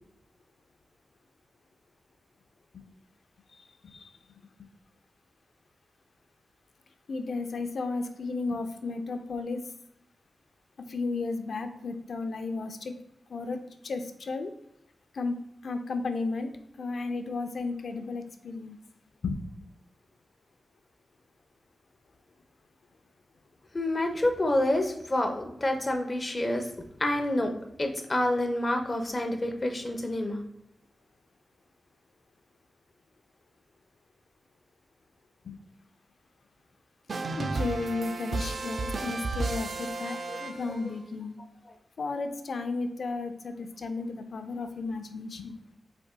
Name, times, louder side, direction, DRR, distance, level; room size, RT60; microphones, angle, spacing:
voice 1, 3.5-4.1 4.6-4.7 7.1-9.6 10.9-13.0 13.3-14.5 15.1-16.5 16.8-18.8 19.2-19.5 35.4-35.6 37.4-41.4 42.0-45.6, left 3 dB, 70° left, 8 dB, 0.5 m, -34 dB
voice 2, 23.7-26.7 27.0-27.5 27.8-30.4 40.3-40.4 41.6-41.7, left 1 dB, 30° left, 4 dB, 0.8 m, -28 dB
sound 1, 37.1-41.0, right 3 dB, 60° right, 0.4 m, -33 dB
5.2 x 4.4 x 2.2 m, 0.81 s
cardioid pair, 75°, 0 cm